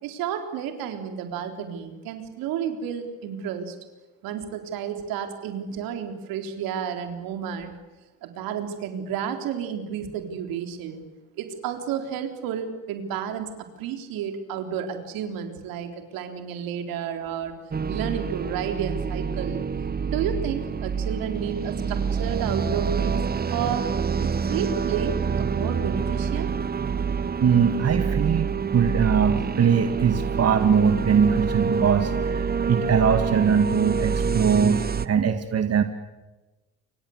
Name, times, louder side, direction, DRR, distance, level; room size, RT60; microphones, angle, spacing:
voice 1, 0.0-3.8 4.2-7.7 8.2-11.1 11.4-13.5 13.8-17.5 17.9-19.6 20.1-23.2 23.5-23.9 24.2-26.5, right 8 dB, 80° right, 6 dB, 4.0 m, -31 dB
sound 1, 17.7-35.1, right 6 dB, 25° right, 1.0 m, -27 dB
voice 2, 27.4-35.8, right 7 dB, 45° right, 8 dB, 2.1 m, -21 dB
28.5 x 24.5 x 8.1 m, 1.1 s
supercardioid pair, 80°, 35 cm